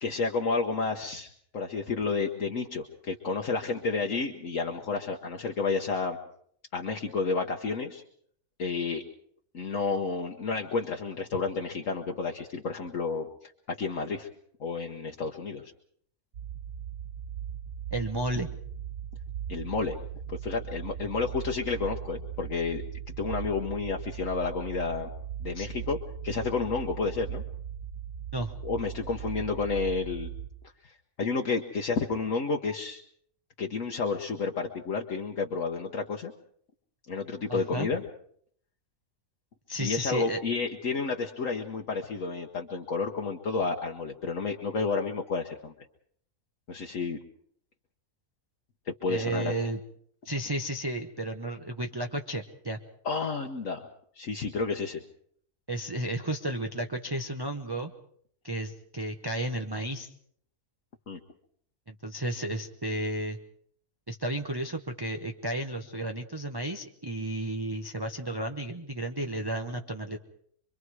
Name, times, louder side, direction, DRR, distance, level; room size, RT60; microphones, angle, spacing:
voice 1, 0.0-6.2 6.7-8.0 8.6-9.0 9.5-14.3 14.6-15.7 19.5-20.0 20.3-22.8 23.2-25.1 25.4-26.0 26.2-27.4 28.6-30.3 30.8-33.0 33.6-36.3 37.1-38.0 39.8-45.7 46.7-47.2 48.9-49.5 53.0-53.9 54.2-55.0 61.1-61.2, left 4 dB, 60° left, 2 dB, 1.5 m, -31 dB
sound 1, 16.3-30.5, right 9 dB, 75° right, 1.9 m, -39 dB
voice 2, 17.9-18.5 25.5-25.7 28.3-28.5 37.5-37.9 39.7-40.4 49.1-49.8 50.2-52.8 55.7-57.9 58.4-60.1 61.9-63.4 64.1-70.2, right 1 dB, 20° right, 3 dB, 0.8 m, -33 dB
25.5 x 23.5 x 4.8 m, 0.64 s
omnidirectional pair, 1.6 m